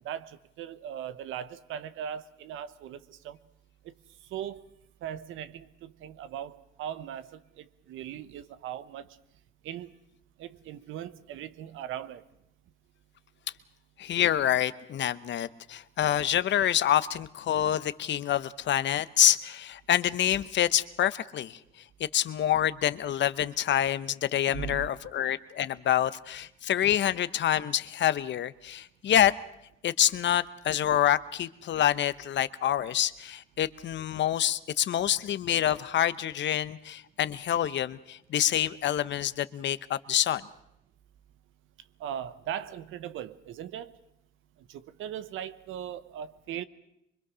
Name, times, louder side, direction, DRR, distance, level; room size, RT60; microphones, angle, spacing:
voice 1, 0.0-3.4 3.8-3.9 4.3-4.6 5.0-9.1 9.6-10.0 10.4-12.2 24.5-24.9 42.0-43.9 44.7-46.6, right 10 dB, 85° right, 14 dB, 1.0 m, -39 dB
voice 2, 14.0-21.6 22.1-29.3 29.8-40.4, left 11 dB, 65° left, 15 dB, 0.9 m, -27 dB
24.5 x 22.0 x 6.3 m, 0.79 s
cardioid pair, 90°, 20 cm